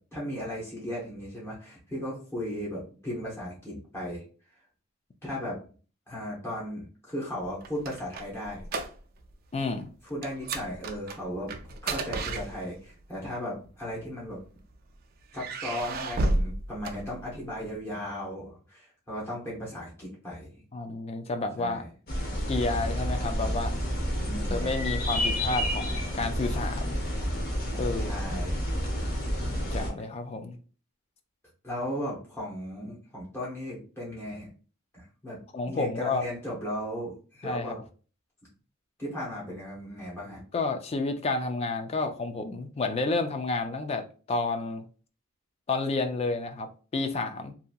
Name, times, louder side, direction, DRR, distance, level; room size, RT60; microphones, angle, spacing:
voice 1, 0.1-4.2 5.2-5.6 6.1-8.6 10.0-11.5 11.8-14.4 15.3-20.5 21.6-21.9 24.2-24.7 28.0-28.6 31.6-34.5 34.9-35.4 35.7-37.8 39.0-40.4, equal, 10° left, 0.8 m, -36 dB
sound 1, 7.4-9.3 9.6-9.8 10.2-13.0 13.9-14.7 15.3-17.6, right 2 dB, 45° right, 0.3 m, -32 dB
voice 2, 9.5-9.9 20.7-21.8 22.5-23.7 24.5-27.0 27.7-28.2 29.4-30.6 35.5-36.2 37.4-37.7 40.5-44.8 45.7-47.5, left 3 dB, 30° left, 0.3 m, -30 dB
sound 2, 22.1-29.9, equal, 50° left, 0.7 m, -30 dB
2.8 x 2.5 x 2.2 m
head